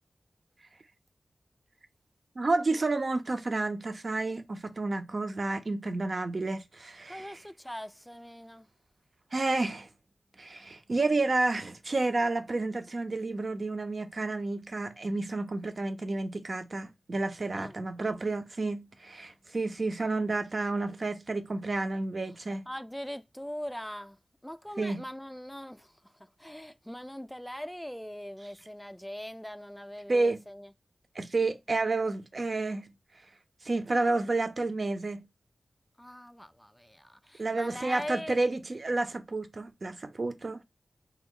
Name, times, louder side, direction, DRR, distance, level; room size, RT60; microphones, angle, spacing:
voice 1, 2.4-7.4 9.3-9.9 10.4-22.7 24.8-25.0 30.1-30.4 31.1-32.9 33.6-35.3 37.4-40.6, right 3 dB, 55° right, 0.5 m, -30 dB
voice 2, 7.1-8.7 17.5-17.8 22.7-24.2 24.4-30.7 36.0-38.4, equal, 5° left, 0.3 m, -41 dB
3.2 x 2.0 x 3.6 m
wide cardioid pair, 60°, 0 cm